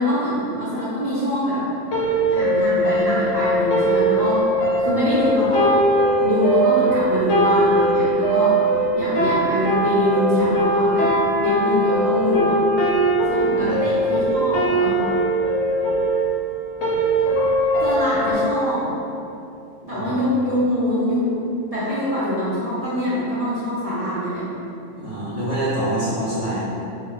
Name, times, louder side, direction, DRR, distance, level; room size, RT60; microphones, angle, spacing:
voice 1, 0.0-1.6 2.3-4.5 4.7-5.7 6.2-8.6 8.9-11.1 11.4-12.6 13.3-15.0 17.8-18.9 19.9-21.4 21.7-24.4, left 1 dB, 45° right, -13 dB, 0.5 m, -24 dB
sound 1, 1.9-18.3, right 1 dB, 70° left, 0.9 m, -20 dB
voice 2, 13.5-14.0 19.8-20.2 24.9-26.6, right 1 dB, 45° left, -12 dB, 0.6 m, -26 dB
2.4 x 2.1 x 3.8 m, 2.7 s
omnidirectional pair, 1.3 m